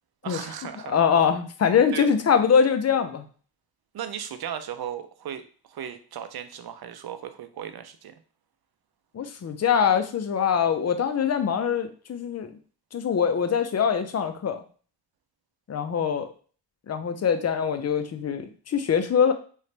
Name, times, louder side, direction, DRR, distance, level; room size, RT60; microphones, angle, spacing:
voice 1, 0.2-1.0 1.9-2.1 3.9-8.1, right 9 dB, 65° right, 10 dB, 0.6 m, -36 dB
voice 2, 0.9-3.2 9.1-12.5 12.9-14.6 15.7-16.3 16.9-19.3, left 7 dB, 40° left, 8 dB, 0.6 m, -23 dB
3.8 x 3.2 x 3.3 m, 0.41 s
cardioid pair, 80°, 41 cm